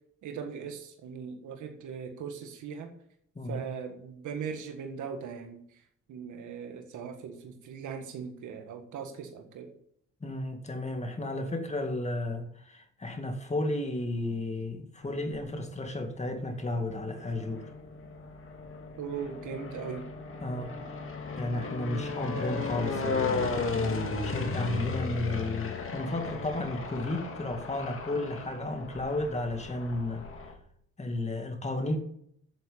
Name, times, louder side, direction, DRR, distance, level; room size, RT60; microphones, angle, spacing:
voice 1, 0.2-2.9 3.5-5.8 6.1-9.7 19.0-20.1, right 6 dB, 80° right, 1.8 m, -39 dB
voice 2, 10.2-17.7 20.4-20.8 21.4-30.3 31.0-32.0, left 2 dB, 20° left, 2.3 m, -33 dB
sound 1, 15.0-15.8 16.5-30.5, left 4 dB, 45° left, 2.2 m, -35 dB
9.1 x 7.5 x 8.8 m
cardioid pair, 90°, 30 cm